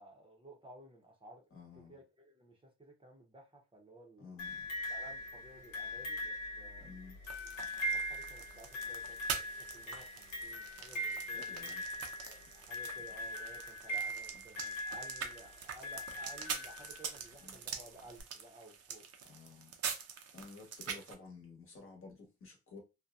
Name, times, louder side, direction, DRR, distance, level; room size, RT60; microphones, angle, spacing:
voice 1, 0.0-1.4 1.7-4.4 4.9-6.9 7.7-9.4 9.7-11.7 12.2-19.1, right 1 dB, 20° right, 0.7 m, -56 dB
voice 2, 1.5-2.0 4.2-4.7 6.8-7.2 11.3-11.8 14.3-14.6 17.4-17.6 19.2-19.7 20.3-22.8, left 4 dB, 45° left, 1.1 m, -53 dB
sound 1, 4.4-17.2 18.2-18.3, equal, 90° left, 1.0 m, -41 dB
sound 2, 7.2-21.1, right 7 dB, 55° right, 0.6 m, -45 dB
2.7 x 2.1 x 2.3 m
cardioid pair, 90°, 30 cm